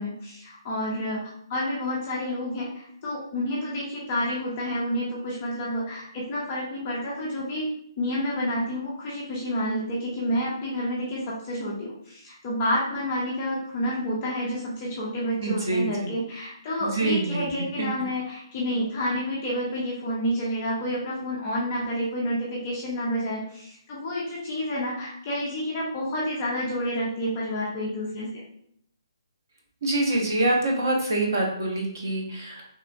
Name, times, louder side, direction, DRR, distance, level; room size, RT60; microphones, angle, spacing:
voice 1, 0.0-7.7 8.0-28.4, equal, 15° left, -5 dB, 0.3 m, -29 dB
voice 2, 15.4-16.1 16.8-17.5 17.8-17.9 29.8-32.6, right 2 dB, 40° right, 0 dB, 0.6 m, -25 dB
2.9 x 2.3 x 2.4 m, 0.67 s
hypercardioid pair, 180°, 3 cm